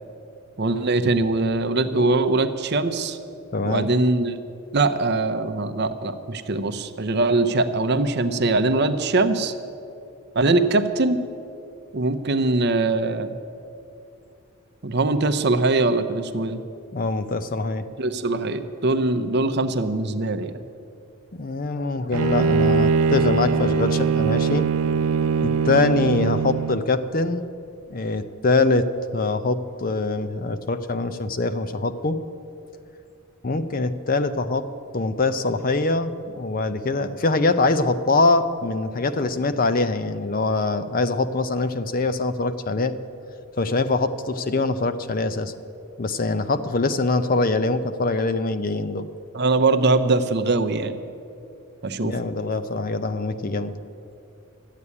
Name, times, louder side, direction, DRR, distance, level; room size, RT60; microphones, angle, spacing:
voice 1, 0.6-3.2 3.6-4.4 4.7-9.5 10.3-11.2 11.9-13.4 14.8-16.6 18.0-20.6 49.3-51.0 51.8-52.1, right 2 dB, 50° right, 9 dB, 0.7 m, -22 dB
voice 2, 3.5-3.9 16.9-17.8 21.4-24.7 25.4-27.4 27.9-28.9 29.1-32.2 33.4-34.7 34.9-42.9 43.6-45.5 46.0-49.1 52.0-53.7, left 3 dB, 40° left, 11 dB, 0.6 m, -23 dB
Bowed string instrument, 22.1-26.9, right 5 dB, 85° right, 0.4 m, -21 dB
12.5 x 8.3 x 9.7 m, 2.5 s
head